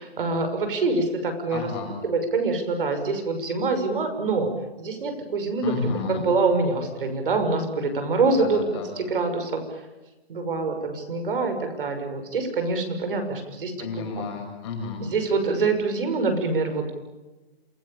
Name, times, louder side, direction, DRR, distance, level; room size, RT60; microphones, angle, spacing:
voice 1, 0.0-1.7 2.0-4.5 4.8-5.7 6.1-8.6 9.0-9.6 10.3-13.7 15.1-16.9, right 3 dB, 60° right, 6 dB, 6.2 m, -25 dB
voice 2, 1.5-1.9 5.6-6.3 8.4-8.9 13.8-15.0, left 4 dB, 25° left, 2 dB, 7.2 m, -31 dB
28.0 x 21.0 x 8.7 m, 1.1 s
hypercardioid pair, 180°, 31 cm